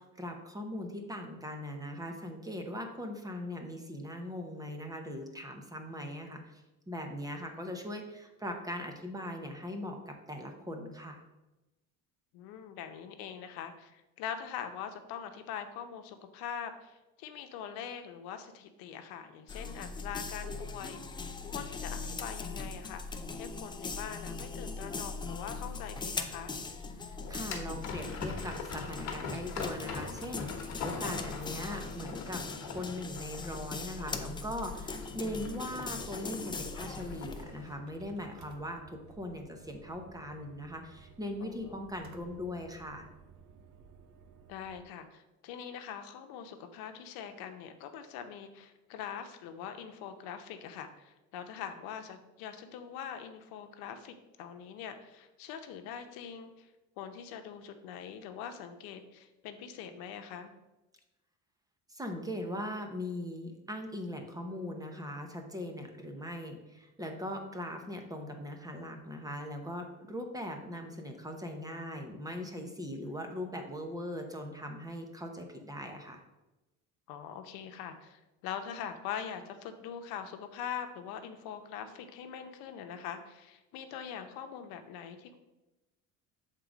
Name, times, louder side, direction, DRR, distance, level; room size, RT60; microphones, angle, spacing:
voice 1, 0.0-11.2 27.0-30.5 30.8-43.1 61.9-76.2, left 1 dB, 10° right, 4 dB, 0.8 m, -40 dB
voice 2, 12.3-26.5 41.4-41.8 44.5-56.7 57.0-60.5 67.7-67.8 72.9-73.1 77.1-85.4, left 8 dB, 85° left, 7 dB, 0.8 m, -43 dB
sound 1, 19.5-37.4, left 4 dB, 15° left, 0.4 m, -40 dB
sound 2, 24.9-37.7, left 4 dB, 50° left, 1.3 m, -43 dB
sound 3, 35.3-44.8, right 5 dB, 55° right, 0.8 m, -56 dB
6.8 x 3.7 x 4.9 m, 1.0 s
cardioid pair, 125°, 35 cm